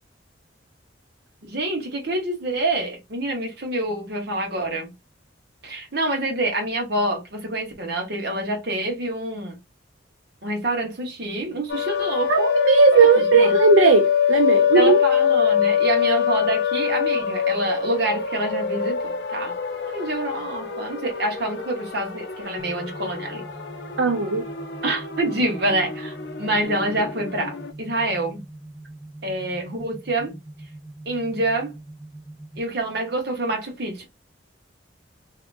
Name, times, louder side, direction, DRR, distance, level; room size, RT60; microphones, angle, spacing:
voice 1, 1.5-4.9 5.6-9.6 10.4-12.5 12.9-13.5 14.7-19.5 19.9-23.4 24.8-28.4 29.2-30.4 31.0-31.7 32.6-34.0, right 1 dB, 55° right, 1.2 m, -27 dB
sound 1, 11.7-27.7, left 8 dB, 55° left, 0.6 m, -24 dB
voice 2, 12.3-15.0 24.0-24.5, right 5 dB, 85° right, 0.5 m, -17 dB
sound 2, 22.6-32.6, right 1 dB, ahead, 0.5 m, -42 dB
3.3 x 2.8 x 2.5 m
head